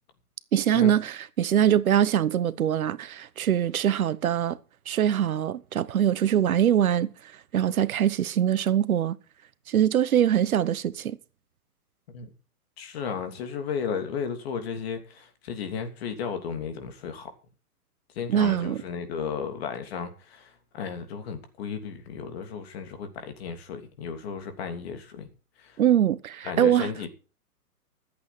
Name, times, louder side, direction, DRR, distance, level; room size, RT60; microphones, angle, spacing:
voice 1, 0.5-4.6 4.9-9.2 9.7-11.2 18.3-18.8 25.8-26.9, right 10 dB, 65° right, 1.1 m, -23 dB
voice 2, 12.8-17.3 18.1-25.3 25.6-25.8 26.4-27.1, left 6 dB, 40° left, 3.1 m, -34 dB
14.0 x 8.3 x 6.1 m
hypercardioid pair, 155°, 46 cm